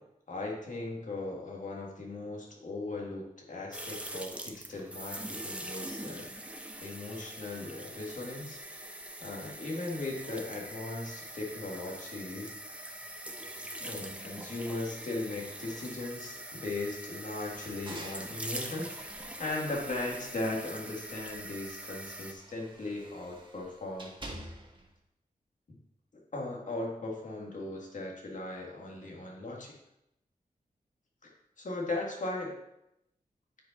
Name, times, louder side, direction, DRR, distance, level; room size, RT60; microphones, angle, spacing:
voice 1, 0.3-8.6 9.2-12.9 13.8-19.0 19.4-24.1 25.7-25.8 26.1-29.7 31.6-32.5, left 2 dB, 55° left, -2 dB, 1.8 m, -38 dB
sound 1, 3.7-22.3, right 1 dB, 10° right, 0.8 m, -43 dB
sound 2, 17.4-20.6 21.0-24.9, right 1 dB, 35° right, 1.5 m, -49 dB
9.8 x 5.0 x 4.1 m, 0.84 s
wide cardioid pair, 90°, 15 cm